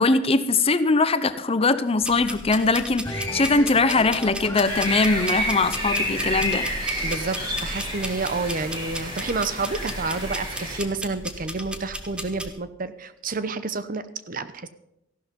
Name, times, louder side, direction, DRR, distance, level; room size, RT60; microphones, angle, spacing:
voice 1, 0.0-6.7, left 3 dB, 30° left, 13 dB, 0.7 m, -21 dB
sound 1, 2.0-12.5, equal, 5° right, 1.3 m, -35 dB
sound 2, 3.0-6.7 7.1-8.1 8.7-9.0, left 1 dB, 15° left, 5.1 m, -35 dB
sound 3, 4.6-10.8, equal, 30° right, 5.5 m, -30 dB
voice 2, 7.0-14.7, right 3 dB, 50° right, 13 dB, 0.8 m, -29 dB
15.0 x 12.0 x 5.3 m, 0.84 s
head